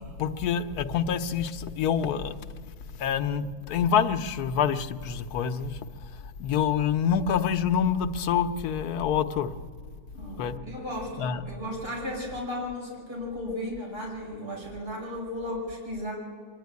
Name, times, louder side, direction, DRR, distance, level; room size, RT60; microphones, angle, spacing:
voice 1, 0.0-2.4 3.0-5.7 6.4-9.5 10.4-10.5 11.2-11.4, left 7 dB, 85° left, 9 dB, 1.3 m, -26 dB
voice 2, 10.1-16.1, left 1 dB, 40° right, -3 dB, 5.6 m, -35 dB
24.5 x 11.0 x 9.4 m, 2.1 s
omnidirectional pair, 1.6 m